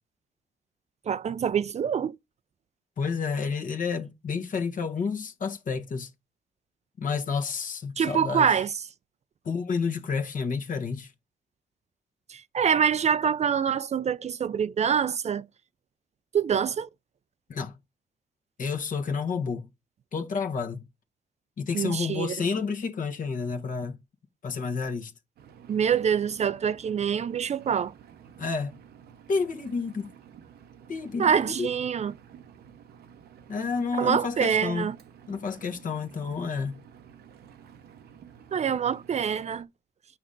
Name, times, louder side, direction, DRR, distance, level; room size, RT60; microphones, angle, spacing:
voice 1, 1.1-2.2 8.0-8.7 12.3-15.4 16.3-16.9 21.7-22.3 25.7-27.9 31.2-32.2 34.0-34.9 38.5-39.7, right 7 dB, 45° right, 0.4 m, -25 dB
voice 2, 3.0-6.1 7.0-8.6 9.4-11.1 17.5-17.7 18.6-19.7 20.1-20.8 21.6-24.0 24.4-25.1 28.4-28.7 29.3-30.1 30.9-31.7 33.5-34.9 35.3-36.8, left 5 dB, 55° left, 1.3 m, -30 dB
Engine, 25.4-39.6, right 8 dB, 85° right, 0.8 m, -51 dB
8.4 x 6.0 x 3.8 m
cardioid pair, 90°, 16 cm